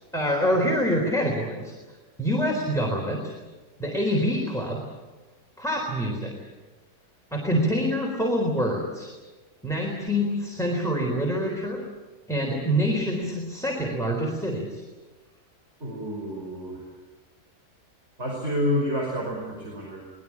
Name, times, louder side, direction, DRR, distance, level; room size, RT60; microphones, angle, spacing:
voice 1, 0.1-1.7 2.2-3.3 3.8-4.8 5.6-6.3 7.3-9.1 9.6-11.8 12.3-14.8, equal, ahead, -1 dB, 4.0 m, -26 dB
voice 2, 15.8-16.8 18.2-20.0, equal, 40° right, -2 dB, 5.6 m, -29 dB
24.0 x 20.0 x 8.7 m, 1.2 s
omnidirectional pair, 1.7 m